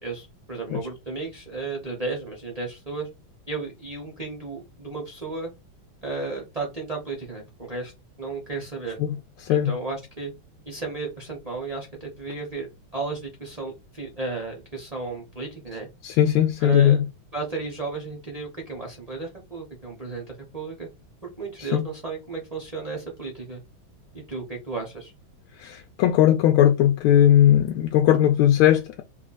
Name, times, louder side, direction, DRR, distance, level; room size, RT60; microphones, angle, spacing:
voice 1, 0.0-3.1 3.5-5.5 6.0-7.9 8.2-9.0 9.5-10.3 10.7-12.7 12.9-15.9 16.6-17.0 17.3-20.9 21.2-23.6 24.1-25.1, right 3 dB, 50° right, 0.4 m, -34 dB
voice 2, 9.4-9.7 16.0-17.0 21.6-21.9 25.6-29.0, left 11 dB, 85° left, 1.4 m, -18 dB
3.3 x 2.4 x 3.9 m
omnidirectional pair, 2.3 m